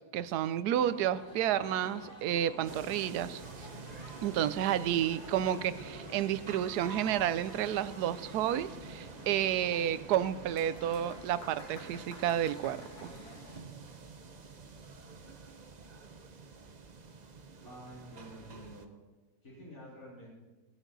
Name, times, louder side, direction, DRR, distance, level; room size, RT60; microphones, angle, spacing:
voice 1, 0.1-3.4 4.2-13.1, right 11 dB, 90° right, 15 dB, 1.2 m, -31 dB
sound 1, 0.7-13.6, left 1 dB, 85° left, 2.7 m, -50 dB
sound 2, 2.6-18.9, right 4 dB, 40° right, 0.7 m, -49 dB
voice 2, 17.6-18.9 19.4-20.4, equal, 65° left, -5 dB, 3.8 m, -49 dB
17.5 x 9.9 x 4.0 m, 1.2 s
omnidirectional pair, 1.6 m